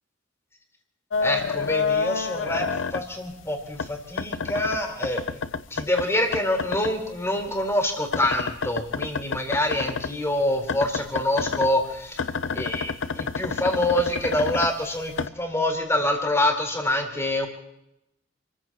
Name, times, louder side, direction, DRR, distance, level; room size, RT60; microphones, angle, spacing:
sound 1, 1.1-3.4 3.8-6.9 7.2-10.2 10.6-15.3, left 5 dB, 85° left, 0.7 m, -29 dB
voice 1, 1.2-2.6 2.9-5.2 5.7-12.2 12.5-17.5, left 1 dB, 15° left, 2 dB, 4.4 m, -26 dB
30.0 x 15.5 x 3.1 m, 0.84 s
head